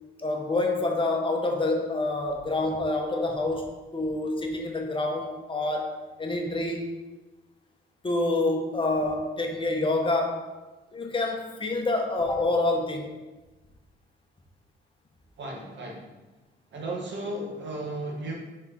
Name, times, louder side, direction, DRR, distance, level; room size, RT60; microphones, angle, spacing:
voice 1, 0.2-5.9 6.2-6.9 8.0-10.5 10.9-13.1, left 2 dB, 25° left, 1 dB, 1.0 m, -27 dB
voice 2, 15.4-16.1 16.7-18.3, right 1 dB, 65° right, -1 dB, 1.5 m, -34 dB
5.2 x 4.7 x 4.2 m, 1.1 s
cardioid pair, 90°, 20 cm